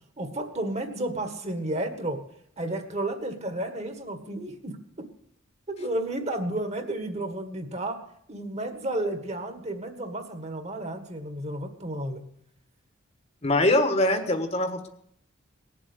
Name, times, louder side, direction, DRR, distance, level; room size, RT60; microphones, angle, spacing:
voice 1, 0.2-2.2 2.6-4.8 5.7-8.0 8.3-12.2, right 1 dB, 35° right, 7 dB, 1.7 m, -32 dB
voice 2, 13.4-14.9, left 1 dB, 35° left, 8 dB, 1.4 m, -23 dB
19.0 x 7.6 x 8.3 m, 0.70 s
head